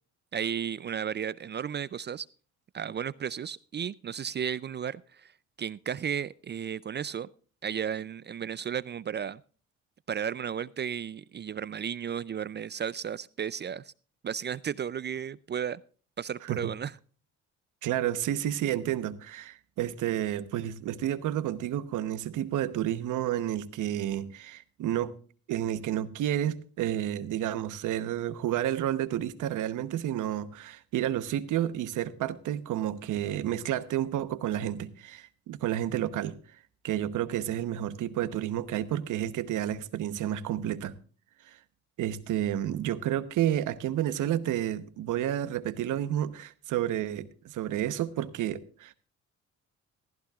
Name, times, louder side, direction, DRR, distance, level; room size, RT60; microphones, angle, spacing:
voice 1, 0.3-2.3 2.7-5.3 5.6-7.3 7.6-9.4 10.1-13.9 14.2-15.8 16.2-17.0, right 8 dB, 35° right, 0.4 m, -34 dB
voice 2, 17.8-25.2 25.5-36.4 36.8-41.0 41.5-41.6 42.0-48.9, right 11 dB, 80° right, 1.0 m, -30 dB
15.5 x 15.0 x 2.4 m
cardioid pair, 90°, 30 cm